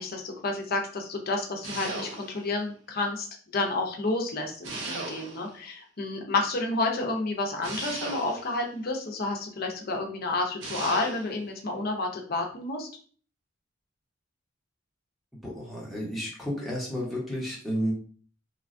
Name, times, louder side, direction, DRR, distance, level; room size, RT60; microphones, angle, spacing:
voice 1, 0.0-3.3 3.5-12.9, left 2 dB, 50° left, 2 dB, 0.6 m, -30 dB
sound 1, 1.6-2.5 4.6-5.6 7.6-8.7 10.6-11.4, right 3 dB, 65° right, 0.7 m, -37 dB
voice 2, 15.4-17.9, equal, ahead, -6 dB, 1.0 m, -32 dB
3.1 x 2.3 x 2.5 m, 0.43 s
head